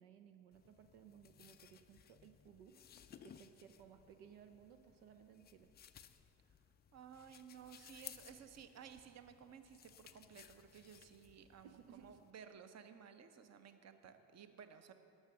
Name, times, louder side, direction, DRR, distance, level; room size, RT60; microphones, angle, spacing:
voice 1, 0.0-5.7 11.6-12.2, right 8 dB, 65° right, 8 dB, 0.7 m, -61 dB
sound 1, 0.5-12.3, left 9 dB, 25° left, 0.4 m, -60 dB
voice 2, 6.9-14.9, right 7 dB, 35° right, 9 dB, 0.8 m, -56 dB
13.0 x 6.1 x 6.4 m, 2.6 s
figure-of-eight pair, 55°, 47 cm